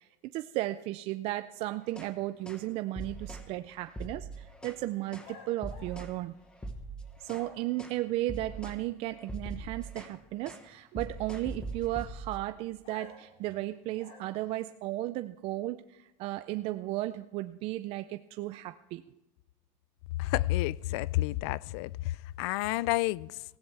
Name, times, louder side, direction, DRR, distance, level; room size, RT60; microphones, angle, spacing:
voice 1, 0.0-6.4 7.2-19.2, right 16 dB, 50° right, 0.4 m, -35 dB
sound 1, 1.8-2.1 2.5-2.7 3.0-3.5 3.9-4.8 5.1-5.3 5.6-6.2 6.5-7.5 7.8-8.0 8.3-8.8 9.1-10.2 10.4-10.7 11.0-12.5, right 2 dB, 5° left, 1.1 m, -42 dB
sound 2, 5.2-6.8 7.2-7.9 12.8-14.6, left 4 dB, 55° left, 4.3 m, -53 dB
voice 2, 20.2-23.4, left 17 dB, 85° left, 0.4 m, -30 dB
17.5 x 16.0 x 3.3 m
cardioid pair, 160°, 13 cm